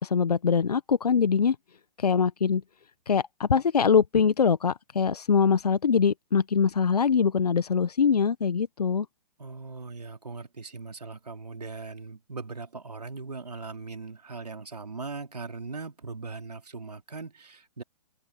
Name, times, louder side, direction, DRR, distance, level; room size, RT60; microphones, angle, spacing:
voice 1, 0.0-1.6 2.0-2.6 3.1-9.1, left 6 dB, 80° left, 1.0 m, -23 dB
voice 2, 9.4-17.8, right 4 dB, 85° right, 3.5 m, -39 dB
open air
figure-of-eight pair, 120°, 20 cm